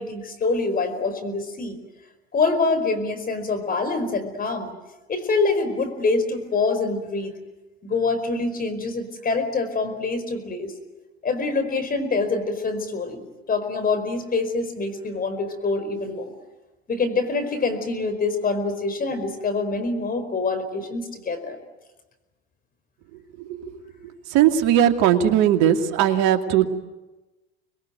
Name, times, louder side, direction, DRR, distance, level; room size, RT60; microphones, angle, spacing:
voice 1, 0.0-1.8 2.3-4.7 5.1-7.4 7.8-10.7 11.2-16.3 16.9-21.6, left 3 dB, 25° left, 8 dB, 4.9 m, -25 dB
voice 2, 23.4-23.7 24.3-26.7, right 10 dB, 60° right, 6 dB, 2.6 m, -19 dB
27.0 x 21.5 x 9.3 m, 1.1 s
hypercardioid pair, 90°, 32 cm